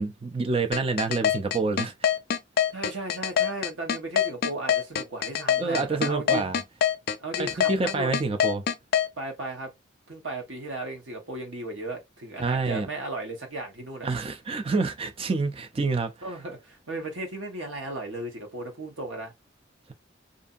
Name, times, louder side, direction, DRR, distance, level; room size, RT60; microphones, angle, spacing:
voice 1, 0.0-2.1 5.6-6.6 7.4-8.6 12.4-12.9 14.0-16.3, right 3 dB, 30° right, 0.4 m, -27 dB
sound 1, 0.7-9.1, left 8 dB, 50° left, 0.4 m, -24 dB
voice 2, 2.7-6.5 7.2-8.1 9.2-9.7 10.1-14.1 16.2-19.3, right 2 dB, 75° right, 1.1 m, -35 dB
2.7 x 2.5 x 2.4 m
head